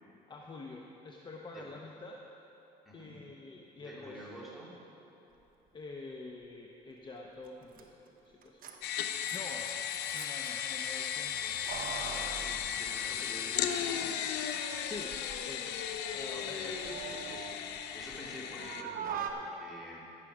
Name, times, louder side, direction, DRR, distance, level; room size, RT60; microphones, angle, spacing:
voice 1, 0.3-2.2 2.9-4.5 5.7-8.7 9.3-11.6 12.1-12.6 14.8-15.8 16.1-17.1, left 2 dB, 25° left, 0 dB, 0.8 m, -47 dB
voice 2, 3.7-4.7 12.4-14.1 16.3-17.5 17.8-20.0, equal, ahead, -6 dB, 3.0 m, -48 dB
Keys jangling, 7.5-7.6 7.7-7.8 8.4-10.5 11.5-13.6 13.9-14.0 14.9-15.4 15.8-18.3 18.6-19.3, right 7 dB, 60° right, 1.0 m, -43 dB
sound 1, 8.8-18.8, left 9 dB, 90° left, 0.7 m, -36 dB
16.5 x 6.7 x 4.9 m, 3.0 s
cardioid pair, 110°, 17 cm